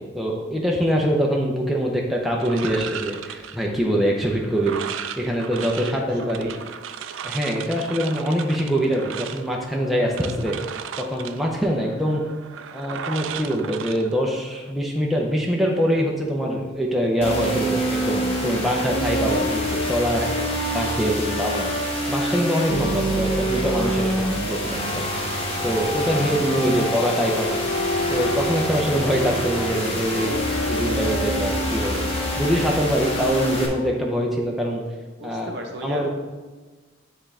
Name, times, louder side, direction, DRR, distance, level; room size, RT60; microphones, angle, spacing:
voice 1, 0.0-6.5 7.2-10.6 11.0-12.2 12.7-20.3 20.7-21.7 22.1-25.1 25.6-27.6 28.1-30.4 30.7-32.0 32.4-34.8 35.2-35.5 35.8-36.1, equal, ahead, -2 dB, 0.6 m, -24 dB
sound 1, 2.4-14.7, right 8 dB, 80° right, 0.4 m, -36 dB
voice 2, 5.8-6.6 20.2-20.7 35.2-36.1, equal, 55° right, 2 dB, 0.8 m, -34 dB
sound 2, 17.2-33.7, equal, 30° left, 1.0 m, -25 dB
9.8 x 3.6 x 3.3 m, 1.3 s
head